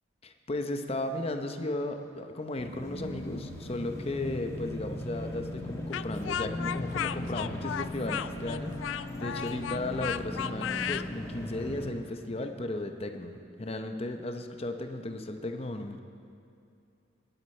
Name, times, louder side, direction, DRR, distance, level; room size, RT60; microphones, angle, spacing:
voice 1, 0.2-16.0, left 2 dB, 30° left, 6 dB, 0.8 m, -35 dB
sound 1, 2.6-11.9, left 1 dB, 15° left, 1.3 m, -38 dB
Speech, 5.9-11.1, left 9 dB, 85° left, 0.3 m, -34 dB
19.5 x 9.8 x 4.4 m, 2.5 s
head